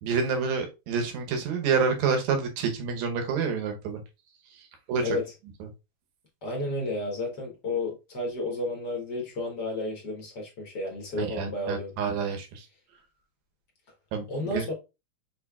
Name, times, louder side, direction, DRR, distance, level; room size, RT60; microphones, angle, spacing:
voice 1, 0.0-4.0 4.6-5.2 5.6-5.7 11.2-12.7 14.1-14.7, right 5 dB, 75° right, 2.2 m, -28 dB
voice 2, 6.4-11.9 14.3-14.7, left 2 dB, 50° left, 1.3 m, -32 dB
6.3 x 3.3 x 2.3 m
omnidirectional pair, 3.4 m